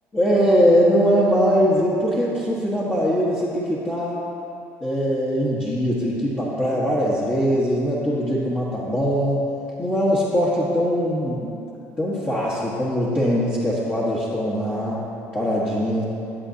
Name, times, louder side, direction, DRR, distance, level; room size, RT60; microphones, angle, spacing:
voice 1, 0.1-4.2 4.8-9.4 9.8-11.6 12.0-15.0 15.3-16.0, equal, 25° left, -8 dB, 1.6 m, -21 dB
12.5 x 7.4 x 2.9 m, 2.8 s
supercardioid pair, 75°, 7 cm